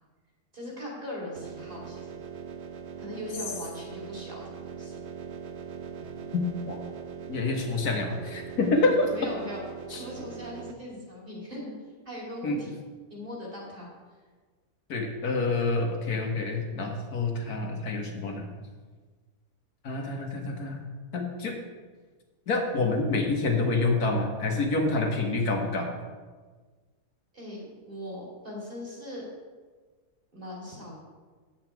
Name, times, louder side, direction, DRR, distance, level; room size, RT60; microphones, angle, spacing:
voice 1, 0.5-2.1 3.0-4.9 9.1-11.7 12.0-12.7 13.1-13.9 27.3-29.2 30.3-31.0, left 1 dB, 35° right, -4 dB, 2.8 m, -39 dB
sound 1, 1.4-10.7, right 7 dB, 55° right, 0.8 m, -41 dB
voice 2, 6.3-6.8 7.3-9.1 9.9-10.0 12.4-12.6 14.9-18.5 19.8-20.8 21.1-21.5 22.5-25.9, left 3 dB, 70° left, 2 dB, 1.7 m, -27 dB
9.3 x 8.0 x 4.6 m, 1.4 s
omnidirectional pair, 1.7 m